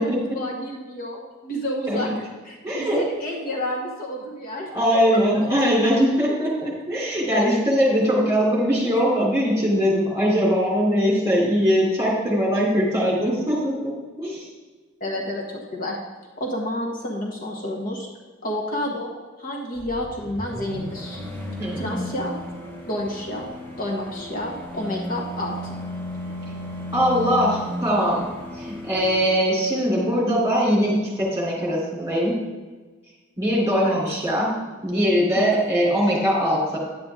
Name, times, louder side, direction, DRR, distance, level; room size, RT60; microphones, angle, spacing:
voice 1, 0.0-2.1 2.4-5.2 5.5-5.7 8.2-8.3 15.0-16.0 16.4-18.1 18.4-19.1 19.4-21.2 21.7-22.3 22.9-23.5 23.8-25.7 33.8-34.0 35.3-35.5, left 1 dB, 45° left, -1 dB, 1.3 m, -30 dB
voice 2, 2.6-3.0 4.7-14.5 21.6-22.0 26.9-28.3 28.6-32.4 33.4-36.8, equal, 15° right, -4 dB, 3.3 m, -21 dB
sound 1, 19.7-29.2, left 1 dB, 10° left, 2.2 m, -34 dB
10.5 x 8.8 x 3.7 m, 1.3 s
head